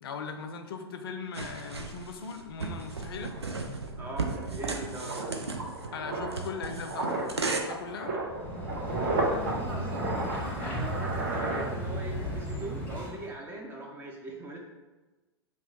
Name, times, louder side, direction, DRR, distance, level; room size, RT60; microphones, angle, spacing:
voice 1, 0.0-3.4 5.9-8.2, left 5 dB, 65° left, 6 dB, 0.4 m, -39 dB
sound 1, 1.3-7.6, right 3 dB, 90° right, 0.4 m, -35 dB
sound 2, 2.8-2.9 3.2-12.3 12.5-12.8, right 2 dB, 55° right, 0.7 m, -34 dB
voice 2, 4.0-5.2 9.3-10.3 10.5-14.6, right 2 dB, 15° right, 0 dB, 0.4 m, -41 dB
sound 3, 8.2-13.3, equal, 10° left, 0.8 m, -35 dB
2.9 x 2.1 x 4.0 m, 1.2 s
figure-of-eight pair, 100°, 13 cm